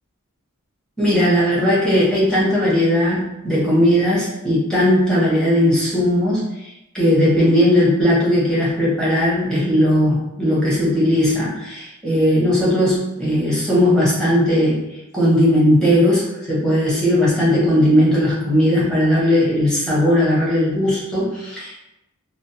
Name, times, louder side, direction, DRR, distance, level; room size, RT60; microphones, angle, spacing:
voice 1, 1.0-6.7 6.9-14.8 15.1-21.8, equal, 5° left, -8 dB, 0.8 m, -17 dB
2.6 x 2.1 x 2.6 m, 0.91 s
head